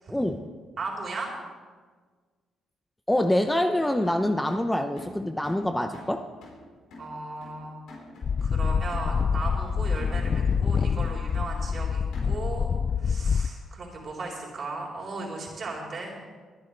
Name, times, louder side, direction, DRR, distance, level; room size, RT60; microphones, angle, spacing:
voice 1, 0.1-0.5 3.1-6.2, left 1 dB, 10° left, 6 dB, 0.7 m, -25 dB
voice 2, 0.8-1.3 7.0-7.8 8.4-12.7 13.0-16.1, right 3 dB, 50° right, -3 dB, 3.9 m, -36 dB
sound 1, 4.0-12.6, left 1 dB, 80° left, 4.2 m, -48 dB
sound 2, 8.2-13.5, left 6 dB, 45° left, 0.3 m, -26 dB
23.0 x 10.5 x 3.4 m, 1.5 s
cardioid pair, 90°, 0 cm